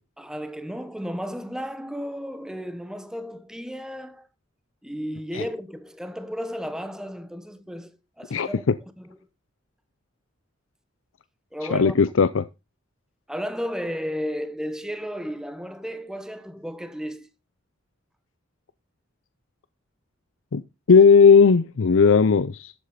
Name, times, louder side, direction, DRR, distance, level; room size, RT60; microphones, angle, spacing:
voice 1, 0.2-4.3 4.8-8.6 9.0-9.2 11.5-12.0 13.3-17.3, equal, 5° right, 1.2 m, -33 dB
voice 2, 11.7-12.4 20.5-20.6 20.9-22.7, left 5 dB, 85° left, 0.6 m, -16 dB
12.5 x 8.3 x 4.1 m
head